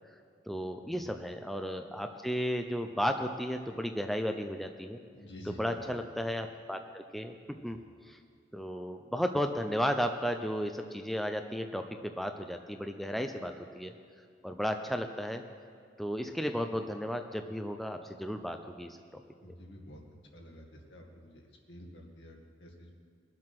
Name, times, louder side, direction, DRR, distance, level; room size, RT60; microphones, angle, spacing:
voice 1, 0.5-5.0 5.6-7.3 7.6-7.8 8.1-8.2 8.5-13.9 14.4-15.4 16.0-19.2, equal, ahead, 5 dB, 0.5 m, -34 dB
voice 2, 5.1-6.0 7.7-7.8 19.4-20.0 20.3-22.9, equal, 80° left, 0 dB, 2.0 m, -50 dB
21.5 x 7.6 x 6.0 m, 2.2 s
head